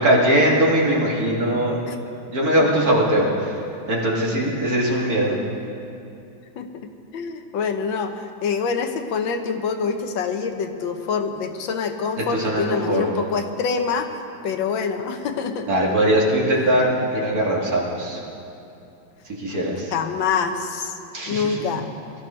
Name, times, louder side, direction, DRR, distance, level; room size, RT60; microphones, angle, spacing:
voice 1, 0.0-1.8 2.3-3.5 3.9-5.4 12.3-13.1 15.7-18.2 19.4-19.9 21.1-21.6, right 1 dB, 50° right, -3 dB, 2.7 m, -20 dB
voice 2, 7.1-14.1 14.4-15.7 19.9-21.0 21.3-21.9, left 5 dB, 75° left, 6 dB, 1.6 m, -25 dB
22.5 x 13.0 x 4.4 m, 2.7 s
omnidirectional pair, 2.1 m